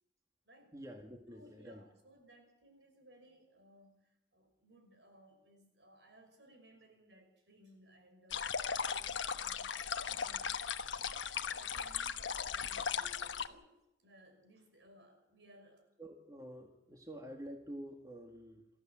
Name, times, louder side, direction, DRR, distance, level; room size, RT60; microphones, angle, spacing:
voice 1, 0.7-1.8 16.0-18.7, equal, 20° right, 3 dB, 1.9 m, -48 dB
voice 2, 1.3-8.5 8.8-10.6 11.0-13.7 14.0-15.9, equal, 70° right, 5 dB, 6.0 m, -62 dB
sound 1, 8.3-13.5, left 7 dB, 85° left, 1.1 m, -37 dB
27.5 x 14.5 x 7.5 m, 0.88 s
head